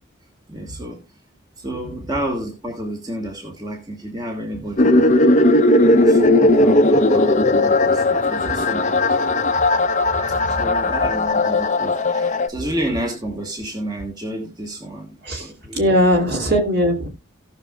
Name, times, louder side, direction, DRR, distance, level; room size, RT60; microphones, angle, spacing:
voice 1, 0.5-1.2 1.6-5.1 5.8-9.0 10.3-15.9, right 1 dB, 20° right, 1.4 m, -30 dB
sound 1, 4.8-12.5, left 2 dB, 35° left, 0.7 m, -17 dB
voice 2, 15.2-17.1, equal, 50° right, 2.5 m, -19 dB
17.5 x 6.1 x 2.3 m
head